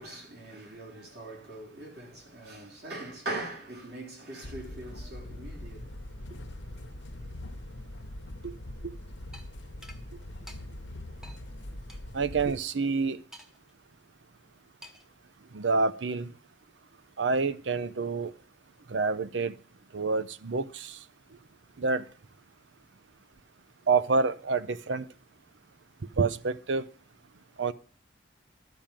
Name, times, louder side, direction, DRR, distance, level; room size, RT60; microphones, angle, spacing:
voice 1, 0.0-6.0, right 2 dB, 60° right, 3.7 m, -41 dB
sound 1, 4.4-12.6, left 1 dB, 75° left, 1.0 m, -42 dB
sound 2, 9.3-9.5 9.8-10.0 10.5-10.6 11.2-11.4 11.9-12.0 13.3-13.7 14.8-15.1, left 1 dB, 5° right, 0.8 m, -48 dB
voice 2, 12.1-13.2 15.5-16.3 17.2-18.3 18.9-19.5 19.9-21.0 21.8-22.0 23.9-25.1 26.2-26.8 27.6-27.7, right 4 dB, 80° right, 0.6 m, -27 dB
12.0 x 5.2 x 7.3 m
head